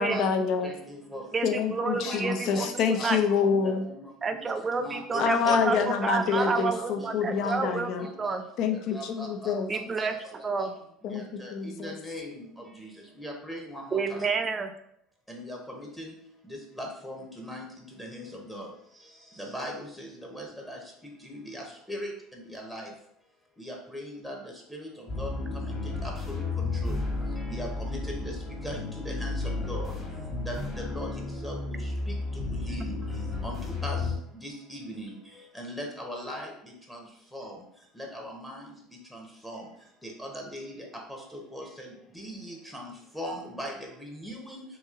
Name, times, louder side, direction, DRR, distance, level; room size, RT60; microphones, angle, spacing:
voice 1, 0.0-0.7 1.4-3.9 5.2-8.1 8.6-9.7 11.0-11.9, left 6 dB, 60° left, 7 dB, 0.5 m, -27 dB
voice 2, 0.6-1.2 1.9-2.7 3.0-3.1 3.5-4.0 4.8-5.9 6.3-7.1 7.4-7.5 8.2-8.3 8.9-9.5 10.1-10.2 11.1-11.5 11.8-12.3 12.8-12.9 13.2-14.2 15.3-16.1 16.5-17.7 18.0-18.2 18.5-18.7 19.5-20.1 20.3-20.8 21.2-22.1 22.7-22.9 23.6-24.3 24.7-24.9 25.2-25.3 25.6-25.7 26.0-27.0 27.5-28.3 28.6-29.9 30.5-31.8 32.1-32.9 33.4-34.0 34.4-35.2 35.6-36.5 37.3-37.5 38.0-38.7 39.4-39.6 40.0-40.7 41.5-41.9 42.2-44.6, equal, 5° left, 0 dB, 0.8 m, -39 dB
voice 3, 1.3-2.7 3.0-3.2 4.2-7.9 8.2-8.4 9.7-10.1 10.4-10.7 13.9-14.7, right 4 dB, 25° right, 7 dB, 0.4 m, -29 dB
sound 1, 25.1-34.2, left 3 dB, 25° left, 1.4 m, -33 dB
3.0 x 2.8 x 3.6 m, 0.70 s
supercardioid pair, 100°, 0 cm